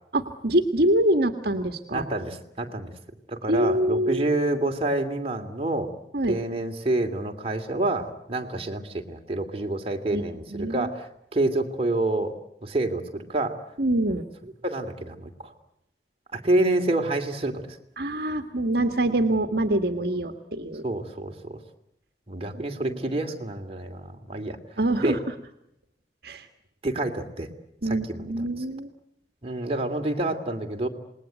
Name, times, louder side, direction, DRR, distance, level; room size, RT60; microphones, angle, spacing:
voice 1, 0.1-2.0 3.5-4.3 6.1-6.4 10.1-10.2 10.5-10.9 13.8-14.2 18.0-20.8 22.8-23.0 24.8-25.2 26.2-26.5 27.8-28.9, right 1 dB, 60° right, 7 dB, 1.7 m, -25 dB
voice 2, 1.9-2.9 3.3-5.9 6.3-13.6 14.6-15.5 16.3-17.6 20.8-21.6 22.3-24.6 25.0-25.2 26.8-27.5 27.8-28.4 29.4-30.9, right 2 dB, 35° right, 4 dB, 2.7 m, -28 dB
27.5 x 20.5 x 9.2 m, 0.78 s
head